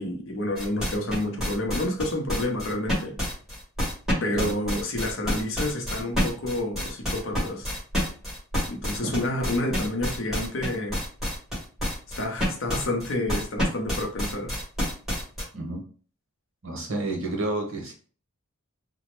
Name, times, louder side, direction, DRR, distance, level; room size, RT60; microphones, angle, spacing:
voice 1, 0.0-3.2 4.2-7.7 8.7-11.0 12.2-14.6, left 1 dB, 60° left, 0.6 m, -29 dB
sound 1, 0.6-15.4, equal, ahead, 1.3 m, -28 dB
voice 2, 16.6-17.9, right 2 dB, 60° right, 0.9 m, -30 dB
2.9 x 2.0 x 3.0 m
head